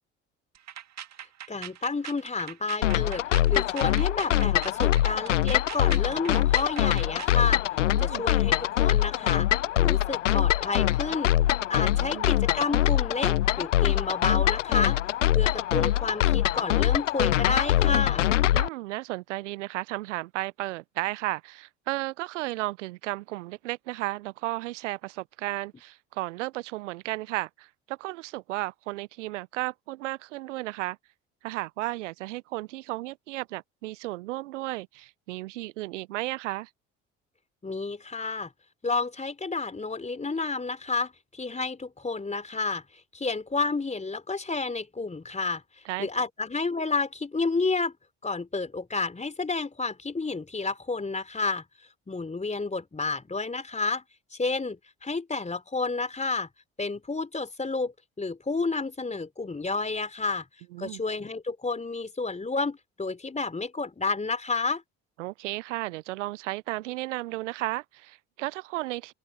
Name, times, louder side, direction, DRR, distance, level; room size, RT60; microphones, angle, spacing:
sound 1, 0.5-7.4, right 10 dB, 45° right, 2.2 m, -42 dB
voice 1, 1.5-3.2 3.5-7.6 8.0-9.5 9.8-11.3 11.7-15.0 15.3-18.3 37.6-38.5 38.8-42.8 43.1-45.6 46.0-47.9 48.2-51.6 52.1-54.0 54.4-56.5 56.8-60.5 60.8-64.8, left 3 dB, 20° left, 3.6 m, -30 dB
sound 2, 2.8-18.7, left 13 dB, 85° left, 0.6 m, -24 dB
voice 2, 11.9-12.3 18.5-31.0 31.4-36.7 45.8-46.1 60.7-61.0 65.2-69.1, right 18 dB, 80° right, 0.8 m, -34 dB
hypercardioid pair, 55°, 36 cm